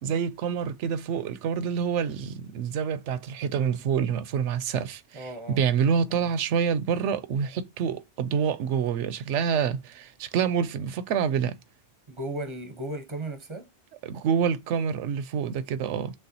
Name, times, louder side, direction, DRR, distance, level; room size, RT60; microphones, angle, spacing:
voice 1, 0.0-11.6 14.0-16.1, right 7 dB, 80° right, 0.9 m, -27 dB
voice 2, 5.1-5.6 6.1-6.3 12.1-13.7, right 1 dB, 30° right, 0.7 m, -36 dB
6.3 x 2.3 x 2.7 m
omnidirectional pair, 1.2 m